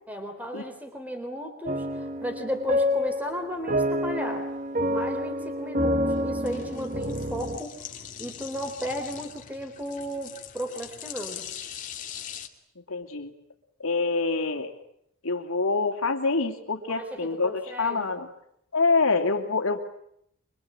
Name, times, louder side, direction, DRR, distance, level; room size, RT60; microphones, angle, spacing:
voice 1, 0.1-4.5 4.9-7.9 8.2-11.5 16.9-18.1, equal, 5° right, 6 dB, 3.7 m, -34 dB
sound 1, 1.7-7.6, equal, 40° right, 1.5 m, -28 dB
sound 2, 3.5-12.5, left 9 dB, 35° left, 2.6 m, -42 dB
voice 2, 12.9-13.3 13.8-14.7 15.2-18.3 18.7-19.8, left 3 dB, 75° left, 4 dB, 2.8 m, -26 dB
26.0 x 24.5 x 8.9 m, 0.72 s
head